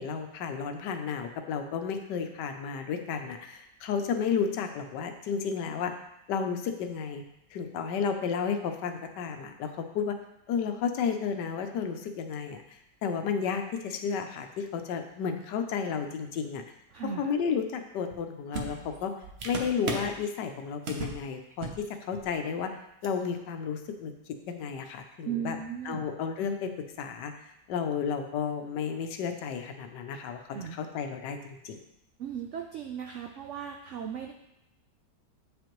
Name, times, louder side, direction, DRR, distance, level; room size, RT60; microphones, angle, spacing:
voice 1, 0.0-5.9 6.3-7.2 7.5-10.2 10.5-16.6 17.0-19.1 19.4-22.7 23.0-24.1 24.5-25.6 25.8-26.7 27.0-27.3 27.7-31.8, left 6 dB, 80° left, 6 dB, 1.3 m, -32 dB
voice 2, 16.9-17.3 25.2-26.1 30.5-30.8 32.2-34.3, right 8 dB, 85° right, 3 dB, 0.6 m, -36 dB
sound 1, 18.1-18.2 18.5-20.2 20.9-21.2 21.5-21.9 22.1-22.3 23.0-23.1, right 3 dB, 50° right, 0.8 m, -36 dB
7.9 x 5.1 x 3.0 m, 0.84 s
omnidirectional pair, 1.8 m